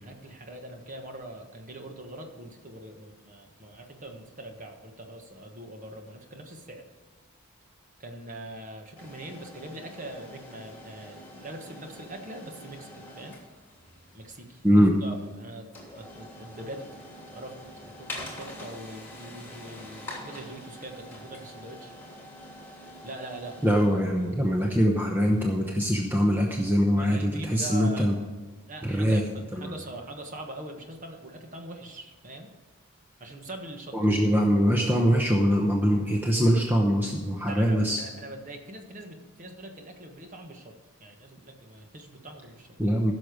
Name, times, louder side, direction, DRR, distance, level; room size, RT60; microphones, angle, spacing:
voice 1, 0.0-6.8 8.0-13.4 14.1-14.6 15.0-15.7 16.0-16.9 17.3-17.6 17.8-21.9 23.0-23.8 27.0-28.3 28.7-32.5 33.2-34.0 37.5-42.7, right 1 dB, 35° right, 4 dB, 1.4 m, -42 dB
sound 1, 9.0-25.8, left 1 dB, 10° left, 2.8 m, -46 dB
voice 2, 14.6-14.9 23.6-28.1 28.8-29.2 29.5-29.7 33.9-38.0 42.8-43.1, equal, 10° right, 0 dB, 0.8 m, -23 dB
15.5 x 6.4 x 5.1 m, 1.4 s
head